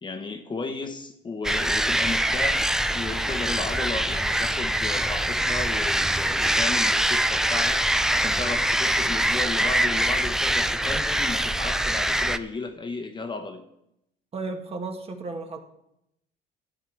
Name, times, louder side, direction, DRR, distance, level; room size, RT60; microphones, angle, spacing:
voice 1, 0.0-13.6, left 3 dB, 25° left, 7 dB, 1.1 m, -34 dB
sound 1, 1.4-12.4, right 1 dB, 5° right, 0.5 m, -24 dB
voice 2, 14.3-15.6, right 3 dB, 35° right, 4 dB, 1.6 m, -33 dB
12.5 x 9.7 x 4.6 m, 0.83 s
cardioid pair, 110°, 17 cm